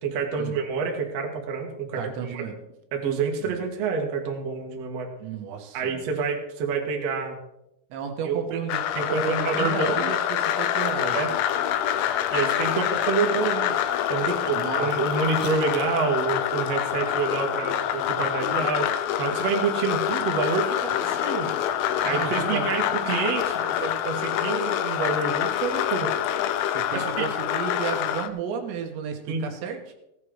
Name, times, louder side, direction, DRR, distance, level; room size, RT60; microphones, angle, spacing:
voice 1, 0.0-2.5 2.9-5.1 5.7-7.4 8.2-8.6 9.0-10.1 11.1-11.3 12.3-13.7 14.1-21.5 22.0-26.1 26.4-26.5 26.9-27.3 29.3-29.5, right 5 dB, 50° right, 1 dB, 2.1 m, -28 dB
voice 2, 2.0-2.5 3.4-3.6 5.2-6.1 7.9-11.2 14.3-14.9 21.0-21.3 22.1-22.8 26.7-29.9, right 7 dB, 75° right, 4 dB, 3.5 m, -33 dB
sound 1, 8.7-28.3, left 10 dB, 90° left, 2.2 m, -26 dB
16.5 x 8.8 x 4.8 m, 0.85 s
omnidirectional pair, 5.2 m